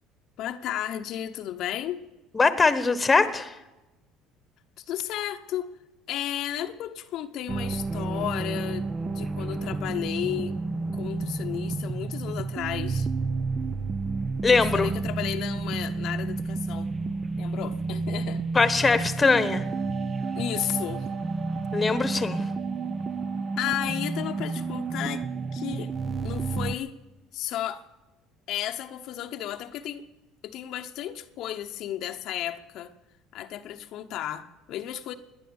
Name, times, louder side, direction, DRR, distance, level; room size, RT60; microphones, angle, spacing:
voice 1, 0.4-2.0 4.8-5.7 6.1-8.9 9.1-10.5 10.9-13.1 14.7-16.9 17.4-18.4 20.4-21.1 23.6-25.2 25.5-25.9 26.2-27.0 27.3-27.8 28.5-30.1 30.4-32.9 33.3-35.1, left 12 dB, 65° left, 0.9 m, -33 dB
voice 2, 2.3-3.5 14.4-14.9 18.5-19.6 21.7-22.5, left 4 dB, 20° left, 1.2 m, -22 dB
sound 1, 7.5-26.7, right 3 dB, 30° right, 0.7 m, -30 dB
18.5 x 10.5 x 7.1 m
cardioid pair, 110°, 0 cm